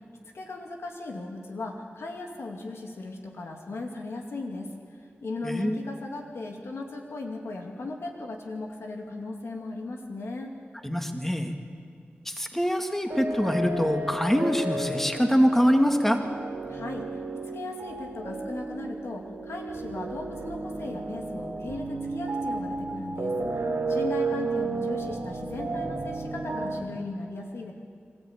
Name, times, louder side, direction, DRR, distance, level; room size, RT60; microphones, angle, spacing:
voice 1, 0.3-10.5 16.7-17.2 17.5-23.6 23.9-27.7, left 2 dB, 85° left, 2 dB, 2.4 m, -37 dB
voice 2, 5.4-5.8 10.8-11.5 12.3-16.2, equal, 5° left, 4 dB, 2.1 m, -24 dB
sound 1, 13.1-26.8, right 3 dB, 75° right, 3.0 m, -33 dB
26.0 x 13.5 x 8.8 m, 2.2 s
cardioid pair, 45°, 4 cm